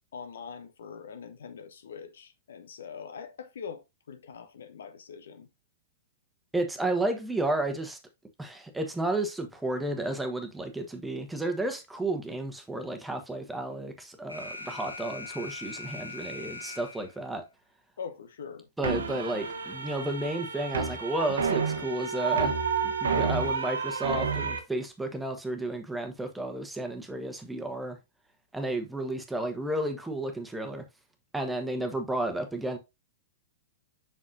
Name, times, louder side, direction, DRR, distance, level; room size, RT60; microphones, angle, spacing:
voice 1, 0.1-5.5 18.0-18.7, left 6 dB, 60° left, 0.8 m, -43 dB
voice 2, 6.5-8.0 8.4-17.4 18.8-22.5 22.8-28.0 28.5-30.8 31.3-32.8, right 1 dB, 5° right, 1.2 m, -32 dB
Alarm, 14.3-17.3, left 3 dB, 85° left, 1.2 m, -41 dB
sound 1, 18.8-24.6, right 5 dB, 65° right, 1.2 m, -30 dB
7.4 x 6.0 x 2.6 m
figure-of-eight pair, 105°, 0 cm